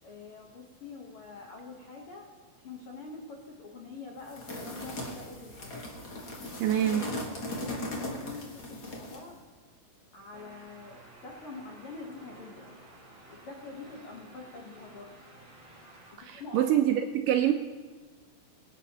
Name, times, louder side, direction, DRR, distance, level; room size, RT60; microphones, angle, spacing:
voice 1, 0.0-2.3 2.5-5.7 7.5-9.4 10.1-12.7 13.3-15.1 16.1-16.9, left 4 dB, 85° left, -1 dB, 1.2 m, -45 dB
sound 1, 4.3-9.3, left 1 dB, 60° left, 1.0 m, -38 dB
voice 2, 6.6-7.1 16.2-17.5, right 11 dB, 80° right, 5 dB, 1.9 m, -25 dB
sound 2, 10.3-16.2, right 2 dB, 35° right, 3.1 m, -53 dB
23.5 x 9.0 x 2.9 m, 1.4 s
omnidirectional pair, 4.4 m